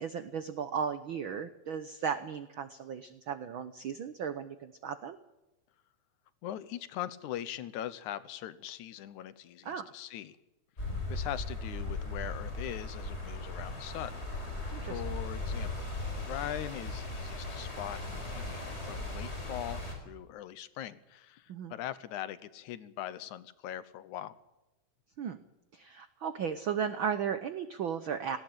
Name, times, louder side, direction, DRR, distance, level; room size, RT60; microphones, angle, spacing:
voice 1, 0.0-5.2 9.6-9.9 14.7-15.0 21.5-21.7 25.2-25.4 25.7-28.4, right 7 dB, 85° right, 11 dB, 1.1 m, -35 dB
voice 2, 6.4-10.4 11.1-14.2 14.8-15.9 16.2-24.4, left 12 dB, 75° left, 15 dB, 2.3 m, -41 dB
sound 1, 10.8-19.9, left 2 dB, 20° left, 4.9 m, -38 dB
18.5 x 17.0 x 8.9 m, 1.0 s
omnidirectional pair, 3.6 m